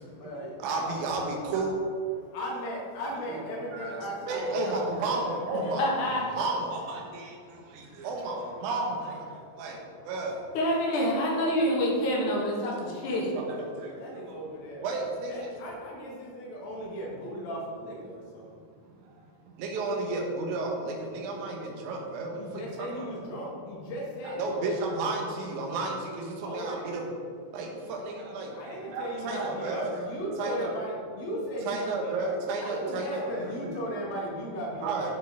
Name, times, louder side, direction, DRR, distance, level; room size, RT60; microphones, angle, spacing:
voice 1, 0.1-0.8 2.3-5.8 7.8-8.1 13.9-14.8 15.3-18.6 22.3-24.8 26.4-26.9 28.5-32.4 32.6-35.1, equal, 85° left, -3 dB, 3.4 m, -37 dB
voice 2, 0.6-1.7 3.3-3.4 3.7-6.0 6.3-10.4 13.1-14.4 14.8-15.6 19.0-23.1 24.2-27.1 27.5-29.9 30.4-30.7 31.7-33.6 34.8-35.1, right 3 dB, 70° right, 0 dB, 2.3 m, -33 dB
voice 3, 5.8-6.2 10.5-13.3, equal, 65° left, -2 dB, 2.7 m, -27 dB
11.5 x 4.6 x 4.7 m, 2.2 s
omnidirectional pair, 4.0 m